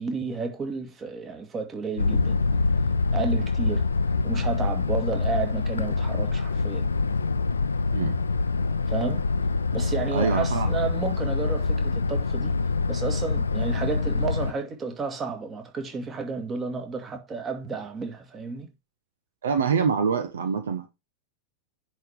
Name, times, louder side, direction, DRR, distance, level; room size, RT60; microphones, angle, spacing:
voice 1, 0.0-2.4 3.1-3.9 4.2-6.9 8.9-9.3 9.7-12.6 12.9-18.7, right 4 dB, 25° right, 2.0 m, -32 dB
sound 1, 2.0-14.5, left 3 dB, 75° left, 0.6 m, -25 dB
voice 2, 10.1-10.7 19.4-20.9, right 6 dB, 65° right, 1.1 m, -25 dB
10.0 x 4.2 x 4.9 m
figure-of-eight pair, 90°, 0 cm